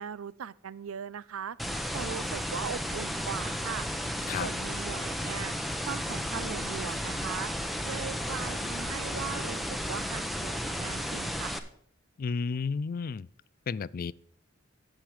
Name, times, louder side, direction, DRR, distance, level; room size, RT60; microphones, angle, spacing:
voice 1, 0.0-1.6 1.9-3.9 4.4-5.5 5.9-7.5 7.8-11.5, right 7 dB, 80° right, 0.5 m, -39 dB
sound 1, 1.6-11.6, equal, ahead, 0.8 m, -33 dB
voice 2, 12.2-13.3 13.7-14.1, left 5 dB, 45° left, 0.3 m, -32 dB
10.0 x 7.7 x 4.8 m
head